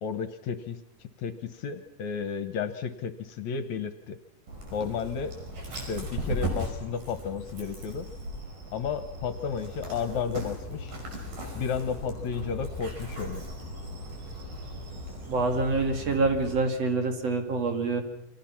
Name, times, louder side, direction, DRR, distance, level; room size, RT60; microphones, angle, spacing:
voice 1, 0.0-4.2 4.7-5.4 5.7-8.1 8.7-10.9 11.5-13.5, left 6 dB, 65° left, 10 dB, 2.3 m, -33 dB
Dog, 4.5-16.5, equal, 75° right, 7.0 m, -37 dB
voice 2, 15.3-18.0, right 3 dB, 50° right, 5 dB, 3.2 m, -26 dB
29.0 x 25.0 x 5.9 m, 0.78 s
omnidirectional pair, 3.8 m